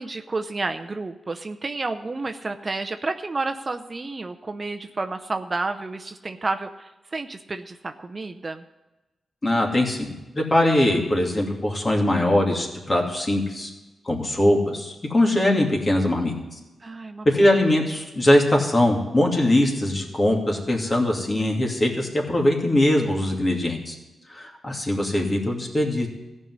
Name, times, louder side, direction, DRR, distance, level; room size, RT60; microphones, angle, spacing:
voice 1, 0.0-8.6 16.8-17.5, right 3 dB, 35° right, 7 dB, 0.7 m, -31 dB
voice 2, 9.4-13.7 14.0-16.3 17.2-23.9 24.3-26.1, left 1 dB, 30° left, 0 dB, 2.6 m, -21 dB
15.0 x 5.4 x 9.5 m, 1.1 s
cardioid pair, 75°, 0 cm